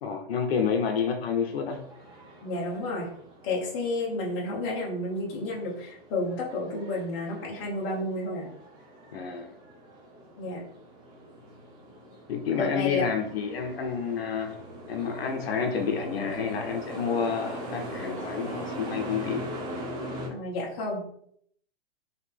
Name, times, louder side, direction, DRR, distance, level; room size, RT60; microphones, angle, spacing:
voice 1, 0.0-1.8 9.1-9.5 12.3-14.6 14.9-19.4, left 6 dB, 75° left, 4 dB, 0.8 m, -29 dB
sound 1, 1.4-20.3, right 1 dB, 15° right, 0.5 m, -41 dB
voice 2, 2.4-3.1 3.4-8.5 10.4-10.6 12.5-13.1 20.3-21.0, left 2 dB, 30° left, -2 dB, 1.0 m, -31 dB
4.1 x 2.8 x 3.5 m, 0.66 s
supercardioid pair, 165°, 31 cm